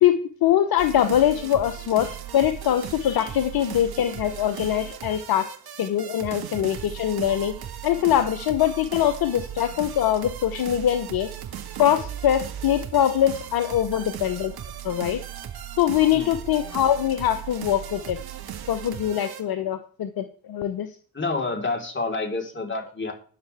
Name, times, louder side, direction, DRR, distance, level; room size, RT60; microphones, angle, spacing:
voice 1, 0.0-5.5 5.8-7.6 7.8-11.3 11.8-14.5 14.8-15.2 15.8-18.2 18.7-21.0, left 11 dB, 60° left, 10 dB, 1.0 m, -23 dB
sound 1, 0.8-19.4, right 10 dB, 60° right, 1.9 m, -37 dB
voice 2, 21.1-23.1, left 3 dB, 30° left, 1 dB, 4.3 m, -28 dB
20.0 x 6.7 x 3.6 m, 0.43 s
hypercardioid pair, 45°, 41 cm